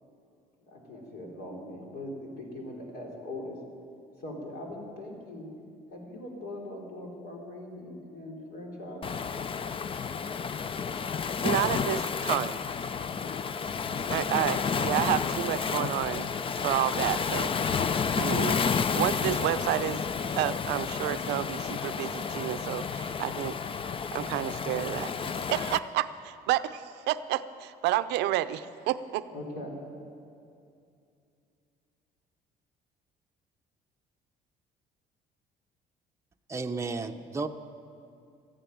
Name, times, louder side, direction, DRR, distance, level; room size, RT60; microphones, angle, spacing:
voice 1, 0.6-3.6 4.2-5.5 5.9-9.2 13.8-14.4 29.3-29.8, left 1 dB, 70° left, 0 dB, 4.1 m, -41 dB
Waves surf, 9.0-25.8, left 6 dB, 30° left, 0.5 m, -31 dB
voice 2, 11.4-12.6 14.1-16.3 16.6-17.5 18.2-18.7 19.0-20.0 20.4-23.6 24.1-25.1 25.5-29.3, right 14 dB, 85° right, 13 dB, 0.6 m, -30 dB
voice 3, 36.5-37.5, right 4 dB, 15° right, 4 dB, 0.7 m, -33 dB
14.5 x 10.0 x 9.2 m, 2.5 s
cardioid pair, 110°, 17 cm